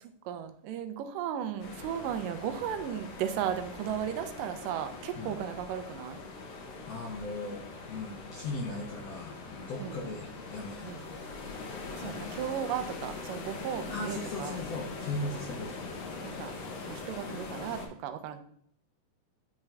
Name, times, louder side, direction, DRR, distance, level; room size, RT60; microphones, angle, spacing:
voice 1, 0.0-6.2 9.8-10.1 10.8-11.1 12.0-14.6 16.2-16.5 16.9-18.4, right 9 dB, 90° right, 8 dB, 2.3 m, -35 dB
sound 1, 1.6-17.9, left 3 dB, 65° left, 1.8 m, -42 dB
voice 2, 6.9-11.2 12.0-12.3 13.9-15.8, left 2 dB, 85° left, 0 dB, 1.4 m, -38 dB
8.6 x 3.5 x 3.2 m, 0.66 s
omnidirectional pair, 3.8 m